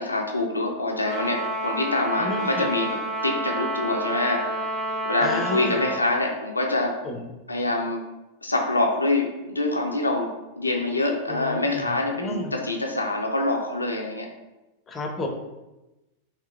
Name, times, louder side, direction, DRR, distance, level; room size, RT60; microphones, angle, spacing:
voice 1, 0.0-4.5 5.0-7.0 7.5-8.0 8.4-14.3, left 2 dB, 80° left, 2 dB, 0.3 m, -25 dB
Trumpet, 1.0-6.0, right 1 dB, 15° right, 0.7 m, -29 dB
voice 2, 2.2-2.7 5.2-6.0 7.0-7.3 11.3-11.9 12.2-12.5 14.9-15.3, left 1 dB, 20° left, 3 dB, 0.5 m, -32 dB
3.6 x 2.8 x 2.2 m, 1.0 s
figure-of-eight pair, 90°, 0 cm